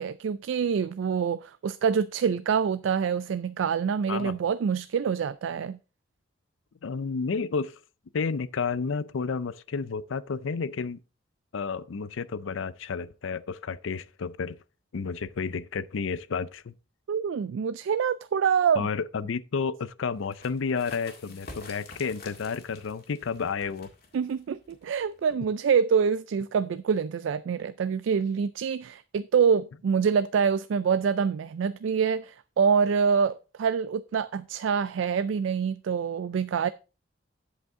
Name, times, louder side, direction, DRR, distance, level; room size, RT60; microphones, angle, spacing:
voice 1, 0.0-5.8 17.1-18.9 24.1-36.7, right 6 dB, 75° right, 0.3 m, -26 dB
voice 2, 4.1-4.4 6.8-7.8 8.1-11.0 11.5-14.6 14.9-16.7 18.7-23.9, left 5 dB, 85° left, 0.5 m, -31 dB
sound 1, 20.2-25.6, left 3 dB, 55° left, 1.9 m, -49 dB
8.0 x 8.0 x 3.7 m
head